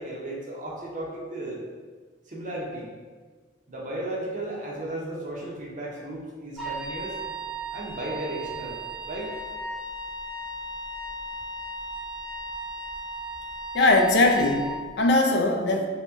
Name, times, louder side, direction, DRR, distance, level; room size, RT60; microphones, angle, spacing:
voice 1, 0.0-1.6 2.3-2.9 3.7-7.2 7.7-9.4, right 1 dB, 45° right, -3 dB, 0.7 m, -35 dB
Wind instrument woodwind instrument, 6.6-14.8, right 1 dB, ahead, 0.6 m, -36 dB
voice 2, 13.7-15.9, left 2 dB, 60° left, 3 dB, 0.4 m, -21 dB
2.9 x 2.9 x 3.5 m, 1.5 s
head